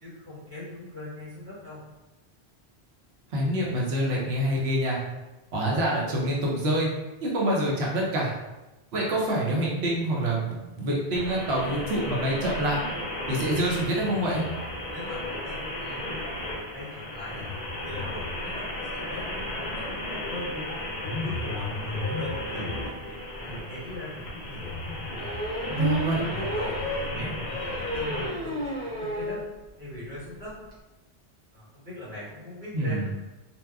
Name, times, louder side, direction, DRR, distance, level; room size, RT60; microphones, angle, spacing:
voice 1, 0.0-1.8 14.9-17.5 17.8-20.6 21.2-24.7 25.6-29.4 29.8-30.6 31.5-33.1, left 1 dB, 90° right, -9 dB, 1.5 m, -41 dB
voice 2, 3.3-5.0 5.5-6.9 7.2-8.3 8.9-12.8 13.3-14.5 25.8-26.2 32.7-33.1, right 1 dB, 70° right, -3 dB, 0.9 m, -26 dB
sound 1, 11.1-28.3, left 1 dB, 55° left, 0.6 m, -34 dB
sound 2, 25.1-29.4 29.8-29.9 30.2-30.3 30.5-30.7, equal, 45° right, 0.9 m, -33 dB
2.8 x 2.1 x 2.2 m, 1.1 s
omnidirectional pair, 1.1 m